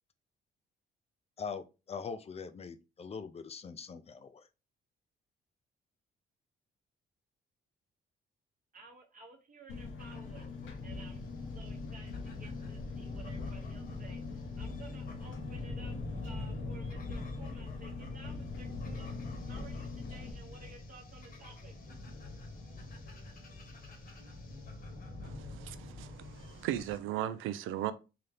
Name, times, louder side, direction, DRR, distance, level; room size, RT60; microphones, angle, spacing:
voice 1, 1.4-4.5, left 5 dB, 30° left, 0.5 m, -42 dB
voice 2, 8.7-10.5 10.8-15.9 16.2-19.1 19.4-21.7, right 4 dB, 45° right, 0.9 m, -55 dB
Engine, 9.7-20.3, left 4 dB, 80° left, 0.9 m, -43 dB
sound 1, 10.0-27.0, left 2 dB, 50° left, 1.2 m, -45 dB
voice 3, 25.2-27.9, right 12 dB, 90° right, 0.4 m, -37 dB
3.9 x 2.7 x 3.3 m
cardioid pair, 90°, 20 cm